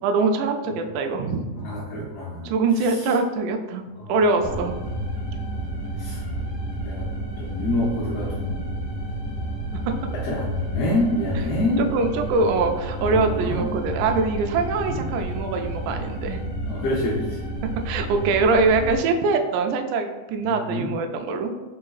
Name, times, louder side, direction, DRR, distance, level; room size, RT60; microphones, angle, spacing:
voice 1, 0.0-2.1 2.4-4.8 11.8-16.4 17.9-21.5, right 3 dB, 85° right, 4 dB, 2.1 m, -23 dB
voice 2, 1.6-2.5 2.9-3.0 4.0-4.1 6.0-6.2 6.8-7.1 7.4-8.5 10.1-11.9 13.1-13.7 14.9-15.0 16.7-17.4 20.4-20.9, left 1 dB, 85° left, -5 dB, 1.4 m, -26 dB
sound 1, 4.4-19.0, right 1 dB, 45° left, 1.6 m, -31 dB
4.7 x 4.2 x 2.3 m, 1.2 s
omnidirectional pair, 3.8 m